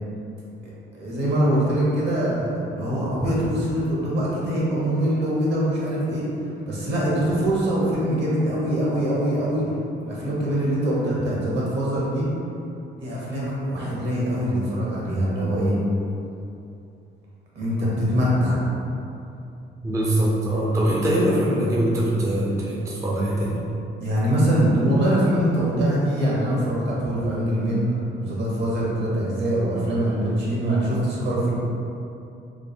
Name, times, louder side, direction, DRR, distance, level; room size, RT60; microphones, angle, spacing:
voice 1, 0.9-6.2 6.7-9.6 10.0-12.3 13.0-15.8 17.5-18.6 24.0-31.5, right 1 dB, 60° right, -6 dB, 1.2 m, -23 dB
voice 2, 19.8-23.6, right 1 dB, 15° right, -4 dB, 0.4 m, -22 dB
3.6 x 2.0 x 3.5 m, 2.7 s
cardioid pair, 90°, 20 cm